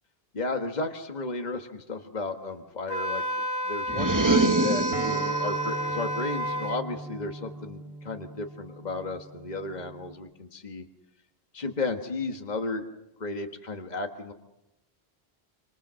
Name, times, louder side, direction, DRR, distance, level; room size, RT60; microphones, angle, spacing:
voice 1, 0.3-3.2 3.6-10.8 11.5-12.9 13.2-14.3, left 3 dB, 45° left, 5 dB, 1.7 m, -33 dB
Wind instrument woodwind instrument, 2.9-6.8, equal, 15° left, 1.5 m, -31 dB
sound 1, 3.9-5.5, right 3 dB, 20° right, 1.0 m, -24 dB
Acoustic guitar, 4.9-10.1, right 4 dB, 80° right, 5.2 m, -38 dB
27.5 x 26.0 x 6.4 m, 0.93 s
omnidirectional pair, 1.0 m